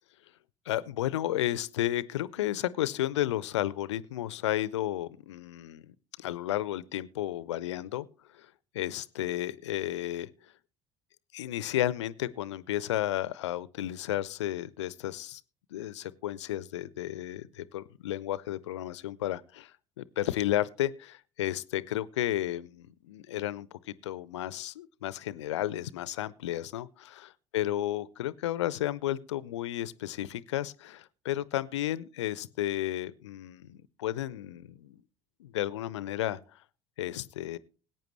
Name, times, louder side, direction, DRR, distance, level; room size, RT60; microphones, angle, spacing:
voice 1, 0.7-5.8 6.2-8.1 8.3-8.5 8.7-10.3 11.3-15.4 15.7-19.7 20.0-35.0 35.4-36.4 37.0-37.6, left 13 dB, 70° left, 20 dB, 0.5 m, -33 dB
20.0 x 8.9 x 3.1 m, 0.36 s
figure-of-eight pair, 60°, 15 cm